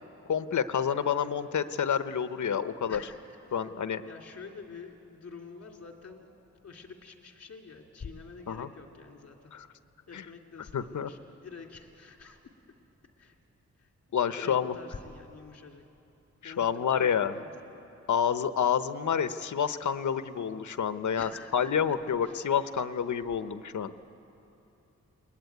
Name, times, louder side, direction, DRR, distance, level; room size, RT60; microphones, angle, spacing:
voice 1, 0.3-3.0 3.5-4.0 8.5-8.7 9.5-9.7 10.1-10.2 10.7-11.1 14.1-14.7 16.4-17.4 18.1-23.9, left 7 dB, 80° left, 11 dB, 1.0 m, -28 dB
voice 2, 2.9-3.2 3.5-3.7 4.0-6.3 6.6-9.5 10.1-12.4 13.2-13.3 13.8-15.8 16.4-17.5 21.2-22.4, left 5 dB, 55° left, 2 dB, 2.8 m, -47 dB
30.0 x 21.5 x 9.4 m, 2.9 s
wide cardioid pair, 135°, 30 cm